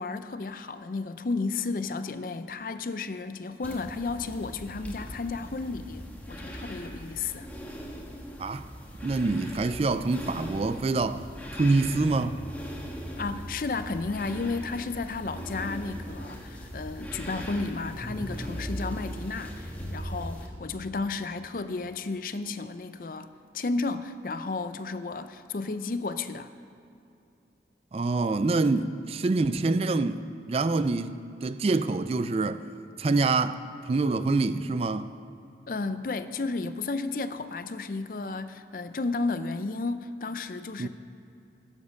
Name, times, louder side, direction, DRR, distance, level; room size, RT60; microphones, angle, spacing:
voice 1, 0.0-7.5 13.2-23.3 23.5-26.5 35.7-40.9, left 3 dB, 50° left, 0.5 m, -33 dB
sound 1, 3.6-20.5, equal, 10° left, 1.3 m, -39 dB
voice 2, 9.0-11.2 11.5-12.4 27.9-30.2 30.5-32.6 33.0-35.1 40.8-40.9, right 3 dB, 35° right, 0.3 m, -26 dB
15.5 x 7.3 x 6.4 m
head